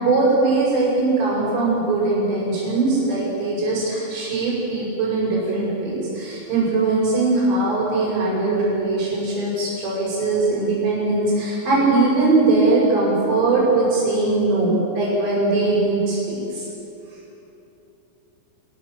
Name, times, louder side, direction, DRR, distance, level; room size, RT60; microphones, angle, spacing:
voice 1, 0.0-16.7, right 3 dB, 75° right, -7 dB, 8.6 m, -20 dB
26.5 x 21.0 x 7.8 m, 3.0 s
omnidirectional pair, 5.1 m